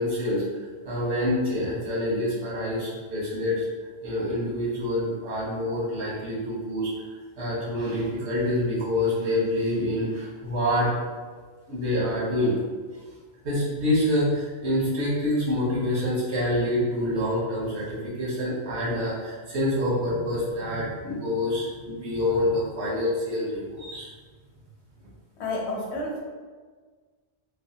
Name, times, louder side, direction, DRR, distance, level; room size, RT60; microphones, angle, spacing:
voice 1, 0.0-3.6 4.0-6.9 7.4-10.9 11.7-12.6 13.4-24.1, left 1 dB, 80° right, -7 dB, 1.3 m, -26 dB
voice 2, 25.4-26.2, left 2 dB, 80° left, -2 dB, 1.0 m, -30 dB
3.2 x 2.2 x 2.7 m, 1.5 s
omnidirectional pair, 1.1 m